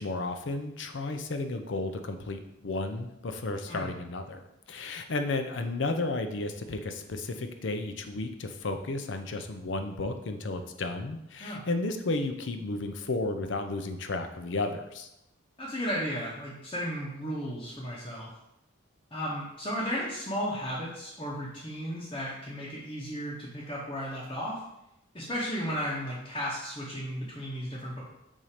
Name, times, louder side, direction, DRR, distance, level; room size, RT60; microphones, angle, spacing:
voice 1, 0.0-4.4 4.7-15.1, left 2 dB, 70° left, 7 dB, 0.6 m, -33 dB
voice 2, 15.6-18.3 19.1-24.6 25.1-28.0, equal, 25° left, -6 dB, 0.9 m, -34 dB
7.3 x 2.8 x 4.9 m, 0.86 s
head